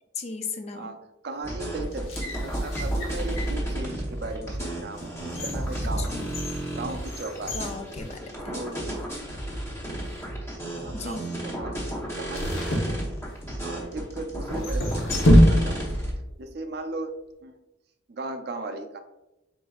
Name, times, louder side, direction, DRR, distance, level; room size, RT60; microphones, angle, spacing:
voice 1, 0.1-0.9 5.8-6.3 7.5-8.6 10.9-11.3, left 4 dB, 30° left, 6 dB, 0.3 m, -36 dB
voice 2, 1.2-6.1 6.8-7.6 8.5-8.9 10.8-11.8 12.2-13.0 13.6-15.8 16.4-17.1 17.4-17.6 18.1-19.0, right 2 dB, 50° right, 7 dB, 0.4 m, -36 dB
sound 1, 1.4-16.1, right 1 dB, 15° left, 0.9 m, -32 dB
sound 2, 1.9-3.7 4.3-4.4 5.0-8.7 9.0-9.1 9.9-10.3 12.3-13.6 14.5-16.0 16.3-16.4, equal, 85° left, 0.9 m, -25 dB
5.0 x 3.8 x 2.4 m, 0.98 s
head